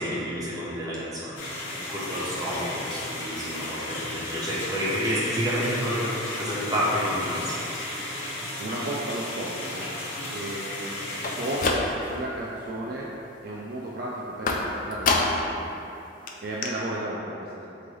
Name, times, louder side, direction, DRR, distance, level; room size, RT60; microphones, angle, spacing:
voice 1, 0.0-1.4 1.7-7.6, equal, 20° right, -8 dB, 0.8 m, -29 dB
sound 1, 1.4-11.7, left 1 dB, 85° left, 0.8 m, -34 dB
voice 2, 8.6-10.1 10.3-10.9 11.2-13.1 13.4-15.7 16.4-17.7, right 1 dB, 50° right, -4 dB, 0.4 m, -34 dB
sound 2, 11.1-12.3 12.7-13.2 14.5-15.6 15.9-16.0 16.3-16.4 16.6-16.7, left 3 dB, 45° left, 0.3 m, -27 dB
3.7 x 3.2 x 3.8 m, 2.8 s
head